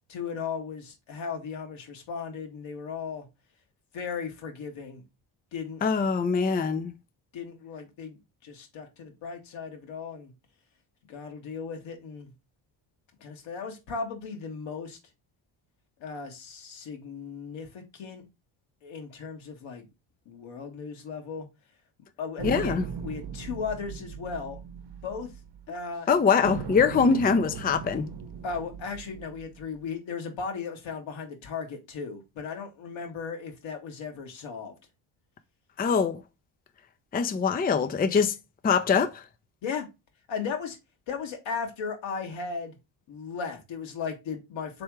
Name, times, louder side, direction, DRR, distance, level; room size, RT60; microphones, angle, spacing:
voice 1, 0.1-3.3 3.9-5.0 5.5-5.8 7.3-8.2 8.4-10.3 11.1-12.3 13.2-15.0 16.0-18.2 18.8-19.9 20.2-21.5 22.2-24.6 25.0-25.3 25.7-26.1 28.4-34.7 38.1-38.2 39.6-39.9 40.3-40.8 41.1-42.8 43.1-44.8, left 5 dB, 75° left, 1.5 m, -36 dB
voice 2, 5.8-6.9 22.4-22.8 26.1-28.1 35.8-36.2 37.1-38.4 38.6-39.2, left 5 dB, 20° left, 0.5 m, -23 dB
sound 1, 22.4-26.0 26.4-29.8, right 6 dB, 55° right, 0.9 m, -39 dB
3.5 x 3.4 x 4.5 m
supercardioid pair, 65°, 47 cm